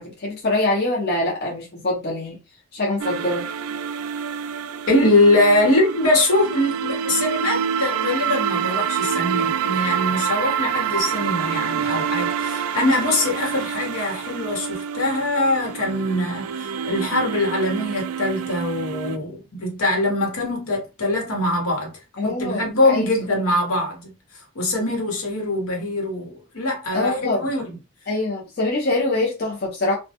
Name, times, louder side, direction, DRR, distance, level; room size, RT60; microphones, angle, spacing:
voice 1, 0.0-2.4 2.7-3.5 22.2-23.1 26.9-27.5 28.1-29.9, left 2 dB, 50° left, 0.7 m, -24 dB
sound 1, 3.0-19.2, right 7 dB, 85° right, 0.3 m, -27 dB
voice 2, 4.9-21.9 22.2-24.1 24.5-27.8, left 1 dB, 90° left, 1.0 m, -22 dB
2.2 x 2.1 x 2.8 m
head